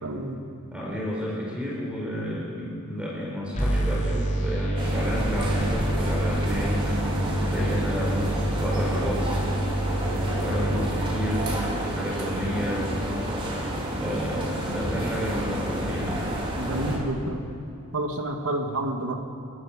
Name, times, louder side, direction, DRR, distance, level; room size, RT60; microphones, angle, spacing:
voice 1, 0.0-0.4 16.6-17.4 17.9-19.2, right 1 dB, 75° right, 3 dB, 2.2 m, -29 dB
voice 2, 0.7-7.1 7.5-9.4 10.0-13.0 14.0-16.2, equal, 5° right, -4 dB, 5.0 m, -31 dB
sound 1, 3.5-11.5, right 1 dB, 35° left, 4.4 m, -27 dB
sound 2, 4.8-17.0, right 1 dB, 25° right, 4.1 m, -30 dB
29.0 x 12.5 x 7.6 m, 2.7 s
head